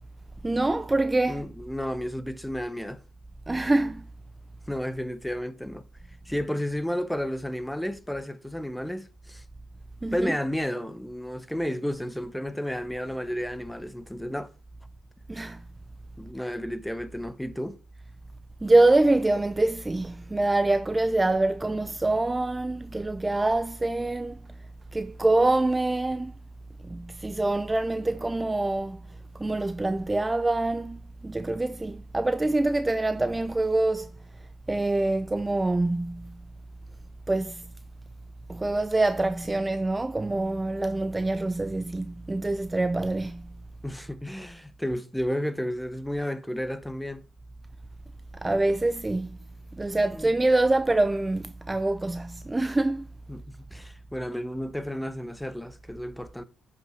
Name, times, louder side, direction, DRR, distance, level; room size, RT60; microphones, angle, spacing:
voice 1, 0.4-1.4 3.5-4.0 10.0-10.4 15.3-15.6 16.4-16.5 18.6-24.4 24.9-26.3 26.8-29.0 29.3-34.1 34.7-36.4 37.3-37.6 38.5-43.5 48.4-49.4 49.7-53.1, right 2 dB, 15° right, 0.3 m, -25 dB
voice 2, 1.3-3.0 4.7-5.8 6.3-9.4 10.1-14.5 16.2-17.8 43.8-47.2 50.1-50.3 53.3-56.4, equal, 5° left, 0.8 m, -32 dB
10.5 x 5.5 x 3.2 m
cardioid pair, 90°, 0 cm